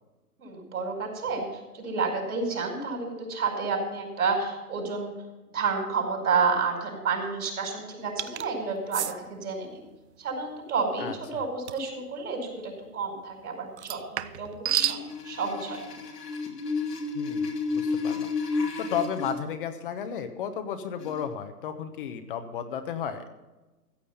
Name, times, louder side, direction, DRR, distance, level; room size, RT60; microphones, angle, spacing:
voice 1, 0.4-5.1 5.5-9.9 10.2-15.0 15.2-15.9, right 4 dB, 65° right, 2 dB, 5.1 m, -30 dB
sound 1, 8.2-8.5 8.9-9.1 11.7-11.9 13.8-15.0, right 10 dB, 45° right, 0.6 m, -29 dB
voice 2, 11.0-11.5 17.1-18.3 18.8-23.2, left 8 dB, 35° left, 8 dB, 1.1 m, -33 dB
sound 2, 14.7-19.3 21.0-21.2, left 4 dB, 80° left, 3.0 m, -31 dB
15.0 x 8.3 x 5.6 m, 1.1 s
hypercardioid pair, 145°, 47 cm